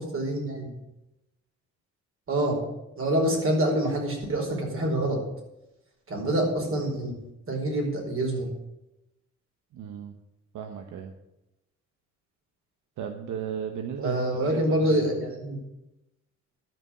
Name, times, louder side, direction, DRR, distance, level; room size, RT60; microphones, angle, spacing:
voice 1, 0.1-0.7 2.3-2.6 3.0-5.2 6.1-7.1 7.5-8.5 14.0-15.6, right 1 dB, 45° right, 0 dB, 4.7 m, -26 dB
voice 2, 9.7-10.2 10.5-11.1 13.0-15.1, right 8 dB, 75° right, 5 dB, 1.1 m, -35 dB
12.5 x 5.6 x 8.5 m, 0.93 s
cardioid pair, 90°, 30 cm